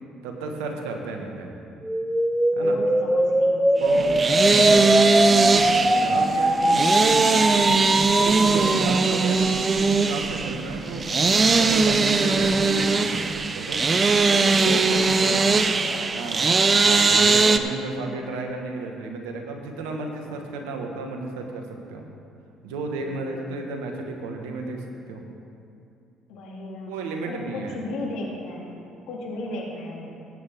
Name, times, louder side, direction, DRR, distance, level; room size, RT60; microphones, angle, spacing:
voice 1, 0.2-1.5 2.5-2.8 3.7-4.1 4.4-7.7 8.2-11.1 11.5-13.8 14.2-15.5 16.1-16.4 16.8-22.0 22.6-25.2 26.9-27.8, right 3 dB, 80° right, 2 dB, 1.5 m, -33 dB
sound 1, 1.8-8.8, right 1 dB, 5° right, 0.8 m, -21 dB
voice 2, 2.6-4.4 14.5-16.2 22.9-23.6 26.3-30.1, left 2 dB, 70° left, -2 dB, 2.5 m, -35 dB
sound 2, 3.8-17.6, right 4 dB, 35° right, 0.7 m, -20 dB
19.0 x 9.0 x 3.6 m, 2.5 s
hypercardioid pair, 60°, 0 cm